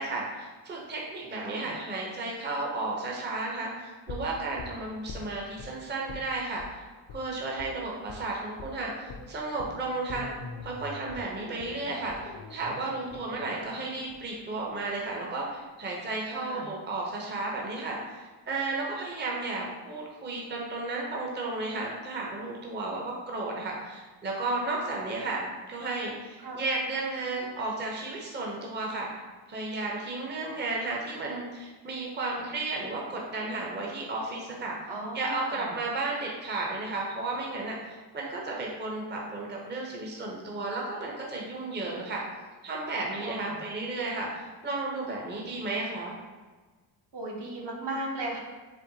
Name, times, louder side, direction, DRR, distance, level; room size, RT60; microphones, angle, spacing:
voice 1, 0.0-6.8 7.1-10.3 10.6-29.1 29.5-34.8 35.1-42.2 42.6-46.1, right 2 dB, 20° right, -2 dB, 0.6 m, -33 dB
voice 2, 1.3-1.7 16.3-16.7 26.4-26.6 34.9-35.7 43.2-43.6 47.1-48.4, right 2 dB, 55° right, -2 dB, 0.9 m, -36 dB
sound 1, 4.1-5.7 6.1-6.3 6.6-6.7 7.1-7.2 7.6-7.7 8.1-8.3 8.6-8.7 9.1-15.1 15.4-15.5, left 4 dB, 50° left, 0.5 m, -44 dB
4.4 x 2.1 x 2.7 m, 1.3 s
cardioid pair, 70°, 49 cm